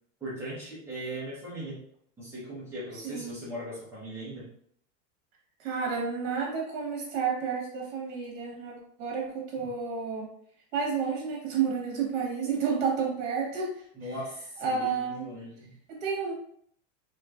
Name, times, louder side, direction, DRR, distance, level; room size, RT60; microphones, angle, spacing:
voice 1, 0.2-1.8 2.2-4.5 9.6-9.7 13.9-15.7, right 1 dB, 5° right, -9 dB, 1.1 m, -39 dB
voice 2, 3.0-3.4 5.6-10.3 10.7-13.8 14.6-15.3 15.9-16.3, right 6 dB, 60° right, -2 dB, 1.3 m, -31 dB
3.0 x 3.0 x 2.5 m, 0.64 s
supercardioid pair, 165°, 38 cm